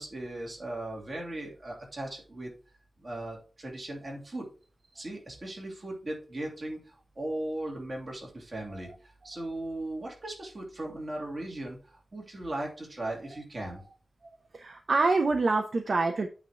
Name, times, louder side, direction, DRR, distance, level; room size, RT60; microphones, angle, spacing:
voice 1, 0.0-2.5 3.0-4.5 4.9-13.8, right 1 dB, 40° right, -2 dB, 2.8 m, -38 dB
voice 2, 14.5-16.3, right 3 dB, 60° right, 5 dB, 0.7 m, -26 dB
8.7 x 3.2 x 5.6 m, 0.36 s
wide cardioid pair, 120°, 0 cm